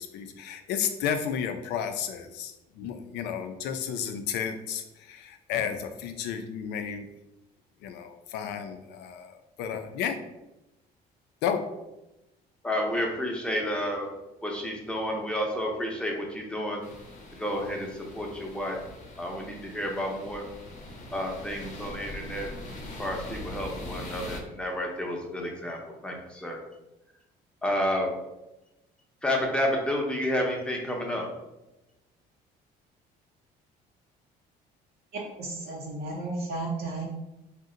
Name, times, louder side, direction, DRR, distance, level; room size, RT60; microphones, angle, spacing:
voice 1, 0.0-4.8 5.1-7.1 7.8-9.3 9.6-10.2 11.4-11.6, left 8 dB, 85° left, 7 dB, 0.4 m, -32 dB
voice 2, 12.6-14.1 14.4-16.8 17.4-17.9 18.1-18.8 19.2-20.4 21.1-22.5 23.0-25.8 26.0-26.6 27.6-28.1 29.2-31.3, equal, 5° left, 0 dB, 0.6 m, -30 dB
sound 1, 16.8-24.4, left 2 dB, 45° left, 0.7 m, -42 dB
voice 3, 35.4-37.0, right 2 dB, 80° right, -4 dB, 0.7 m, -33 dB
2.7 x 2.1 x 3.7 m, 0.95 s
cardioid pair, 110°, 17 cm